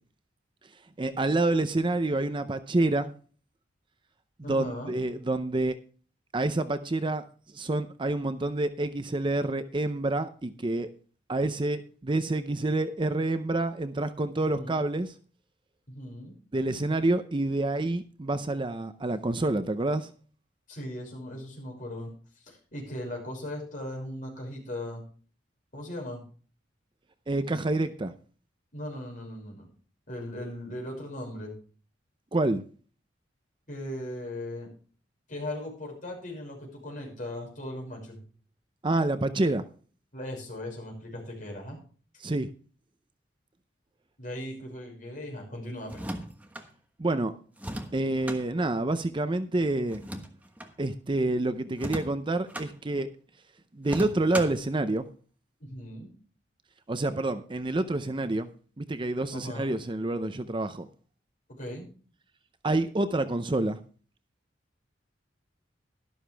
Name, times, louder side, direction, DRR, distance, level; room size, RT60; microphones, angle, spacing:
voice 1, 1.0-3.1 4.4-5.8 6.3-7.2 7.5-10.9 11.3-15.1 16.5-20.1 27.3-28.1 32.3-32.6 38.8-39.6 42.2-42.5 47.0-47.3 47.9-50.0 50.8-53.1 53.7-55.1 56.9-58.5 58.8-60.9 62.6-63.8, right 2 dB, 25° right, 11 dB, 0.6 m, -28 dB
voice 2, 4.4-4.9 14.4-14.8 15.9-16.4 20.7-22.1 22.4-25.0 25.7-26.2 28.7-29.7 30.1-31.5 33.7-34.7 35.3-38.2 40.1-41.8 44.2-46.0 55.6-56.1 59.3-59.7 61.5-61.9, left 1 dB, 45° left, 0 dB, 5.9 m, -38 dB
sound 1, 45.8-46.7 47.6-48.4 49.9-50.7 51.7-52.7 53.8-54.7, right 1 dB, 10° right, 1.3 m, -37 dB
12.5 x 12.0 x 3.4 m, 0.41 s
head